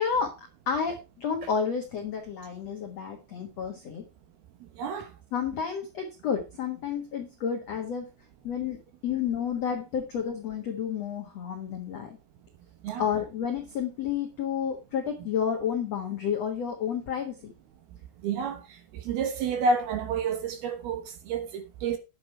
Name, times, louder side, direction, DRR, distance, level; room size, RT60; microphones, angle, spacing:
voice 1, 0.0-4.0 5.3-8.1 8.4-12.2 13.0-17.5 19.1-19.2, left 7 dB, 80° left, 1.4 m, -31 dB
voice 2, 18.2-18.6 19.1-22.0, right 4 dB, 70° right, 2.6 m, -29 dB
10.5 x 8.5 x 4.6 m
omnidirectional pair, 5.6 m